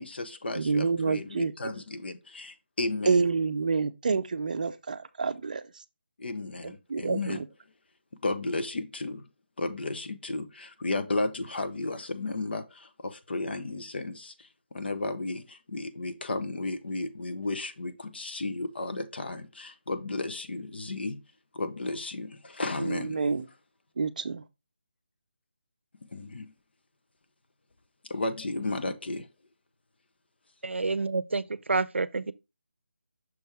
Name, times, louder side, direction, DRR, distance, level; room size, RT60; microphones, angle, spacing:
voice 1, 0.0-3.2 6.2-7.4 8.2-9.3 9.6-21.2 21.5-23.2 26.0-26.5 28.1-29.3, left 2 dB, 60° left, 0.9 m, -33 dB
voice 2, 0.6-1.5 3.1-5.6 6.6-7.4 22.8-23.4 24.0-24.4, right 4 dB, 45° right, 0.6 m, -28 dB
voice 3, 30.6-32.3, right 3 dB, 90° right, 0.5 m, -28 dB
6.2 x 3.7 x 4.3 m
figure-of-eight pair, 170°, 6 cm